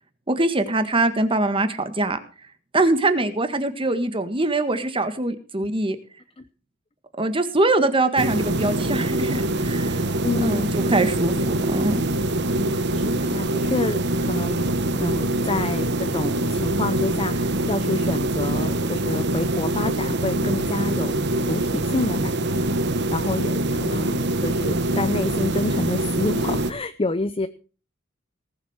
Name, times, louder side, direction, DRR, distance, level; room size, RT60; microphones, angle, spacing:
voice 1, 0.3-2.2 2.7-6.0 7.2-10.0 10.4-12.0, right 2 dB, 25° right, 10 dB, 1.7 m, -23 dB
sound 1, 8.2-26.7, right 1 dB, 60° right, 1.2 m, -24 dB
voice 2, 10.2-10.8 12.6-14.7 15.0-27.5, left 2 dB, 30° left, 13 dB, 0.7 m, -29 dB
19.0 x 7.6 x 6.5 m, 0.38 s
head